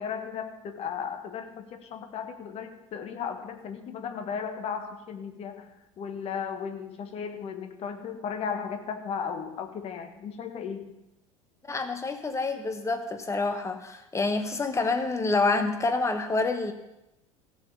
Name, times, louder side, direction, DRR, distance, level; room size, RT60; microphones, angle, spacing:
voice 1, 0.0-5.7 6.0-10.8, left 6 dB, 35° left, 7 dB, 1.5 m, -35 dB
voice 2, 11.7-16.7, left 3 dB, 15° left, 7 dB, 1.1 m, -27 dB
16.0 x 5.5 x 6.8 m, 0.92 s
figure-of-eight pair, 75°, 18 cm